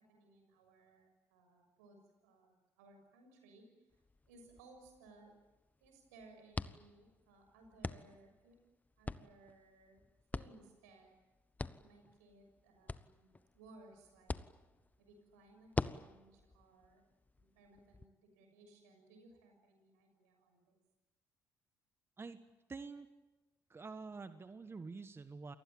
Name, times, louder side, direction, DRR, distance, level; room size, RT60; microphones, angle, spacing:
voice 1, 0.1-2.0 2.2-3.7 4.3-5.3 5.8-8.6 9.0-10.0 10.3-11.1 11.8-13.3 13.5-14.3 15.0-17.0 17.4-20.8, right 2 dB, 85° right, 4 dB, 6.6 m, -62 dB
sound 1, 3.9-18.1, left 3 dB, 20° left, 1.0 m, -46 dB
voice 2, 22.7-23.1 23.7-25.5, right 4 dB, 30° right, 10 dB, 1.5 m, -47 dB
28.0 x 19.5 x 9.0 m, 1.1 s
hypercardioid pair, 55°, 8 cm